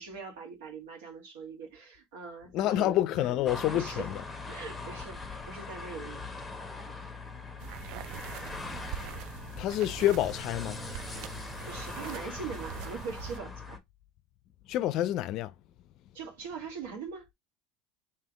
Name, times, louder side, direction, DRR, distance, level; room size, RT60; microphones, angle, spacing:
voice 1, 0.0-3.2 3.6-4.1 4.5-6.2 11.6-13.8 16.1-17.3, right 5 dB, 85° right, 1.4 m, -42 dB
voice 2, 2.5-4.2 9.6-10.8 14.7-15.5, left 13 dB, 50° left, 0.4 m, -28 dB
sound 1, 3.4-13.8, left 4 dB, 5° left, 0.8 m, -41 dB
sound 2, 7.6-13.4, right 12 dB, 60° right, 0.3 m, -43 dB
3.5 x 2.8 x 3.4 m
supercardioid pair, 125°, 0 cm